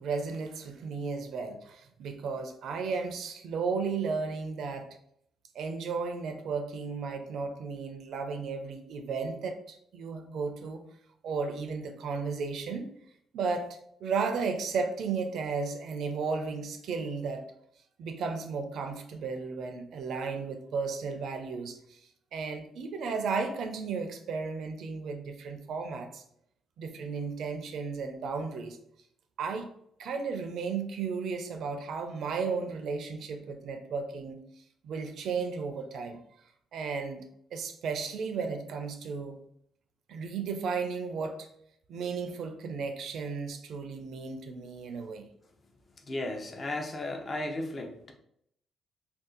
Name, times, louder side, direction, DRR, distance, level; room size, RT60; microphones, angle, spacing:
voice 1, 0.0-4.9 5.5-10.8 11.2-12.9 13.3-17.4 18.0-22.0 22.3-26.2 26.8-28.8 29.4-29.7 30.0-34.4 34.8-36.2 36.7-37.2 37.5-39.4 40.1-41.5 41.9-45.3, right 5 dB, 70° right, 7 dB, 0.4 m, -34 dB
voice 2, 46.0-48.1, left 2 dB, 35° left, 4 dB, 0.6 m, -35 dB
2.7 x 2.3 x 3.7 m, 0.72 s
cardioid pair, 90°, 0 cm